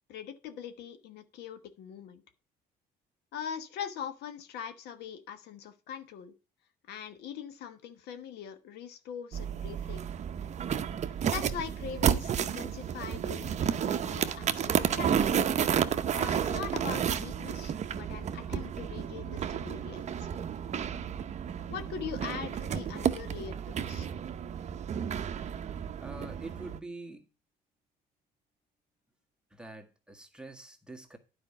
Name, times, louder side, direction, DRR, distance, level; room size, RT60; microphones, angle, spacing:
voice 1, 0.1-2.2 3.3-6.3 6.9-10.0 11.3-15.4 16.1-20.3 21.7-24.1, left 8 dB, 75° left, 1.2 m, -42 dB
sound 1, 9.3-26.8, right 8 dB, 45° right, 0.7 m, -31 dB
voice 2, 26.0-27.3 29.5-31.2, right 2 dB, 5° right, 1.5 m, -45 dB
9.9 x 4.9 x 5.5 m
cardioid pair, 110°, 17 cm